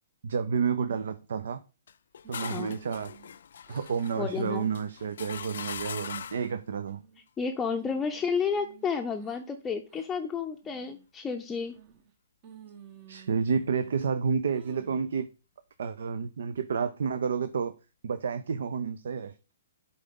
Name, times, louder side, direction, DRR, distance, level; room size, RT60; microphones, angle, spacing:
voice 1, 0.2-1.6 2.3-3.1 3.7-7.0 13.1-15.3 15.8-17.7 18.0-19.3, right 6 dB, 65° right, 0.5 m, -30 dB
sound 1, 1.9-6.6, left 8 dB, 60° left, 0.3 m, -41 dB
sound 2, 2.2-3.4 3.6-4.2 4.6-4.9 5.4-6.0 6.5-7.3 7.6-9.4 9.9-10.1 10.6-11.1 11.7-12.1 12.4-14.0 14.5-15.1, right 8 dB, 35° right, 1.1 m, -53 dB
voice 2, 4.1-4.6 7.4-11.7, left 5 dB, 15° left, 0.6 m, -31 dB
11.0 x 3.9 x 3.8 m
figure-of-eight pair, 120°, 0 cm